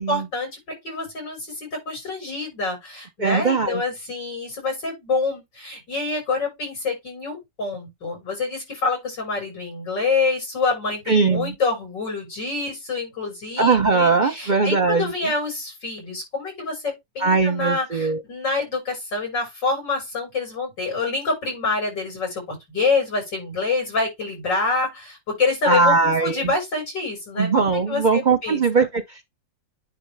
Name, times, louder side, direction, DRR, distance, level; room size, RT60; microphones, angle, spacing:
voice 1, 0.0-28.9, left 3 dB, 70° left, 6.6 m, -27 dB
voice 2, 3.2-3.8 11.1-11.5 13.6-15.3 17.2-18.2 25.7-26.5 27.4-29.3, right 4 dB, 80° right, 0.4 m, -20 dB
9.8 x 3.9 x 3.4 m
omnidirectional pair, 2.0 m